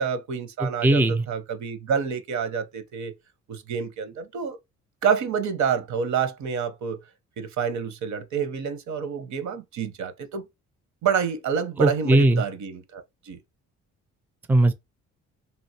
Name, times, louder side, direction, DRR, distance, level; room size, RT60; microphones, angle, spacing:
voice 1, 0.0-3.1 3.5-4.6 5.0-7.0 7.4-10.4 11.0-13.4, right 6 dB, 70° right, 0.8 m, -28 dB
voice 2, 0.6-1.3 11.8-12.4 14.5-14.7, right 2 dB, 5° right, 0.4 m, -19 dB
3.3 x 2.6 x 2.7 m
cardioid pair, 90°, 30 cm